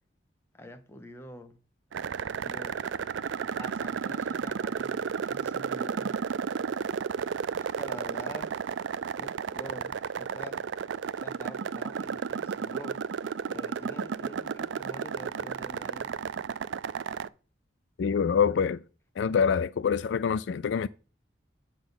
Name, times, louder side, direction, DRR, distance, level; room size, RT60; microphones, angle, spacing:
voice 1, 0.5-1.6 2.4-2.8 3.6-6.2 6.6-6.7 7.6-8.5 9.2-10.6 11.2-13.0 13.5-16.1, left 1 dB, 15° left, 1.1 m, -46 dB
sound 1, 1.9-17.3, right 6 dB, 85° right, 0.4 m, -33 dB
voice 2, 18.0-18.8 19.2-20.9, left 6 dB, 75° left, 0.3 m, -25 dB
8.7 x 4.0 x 7.0 m
head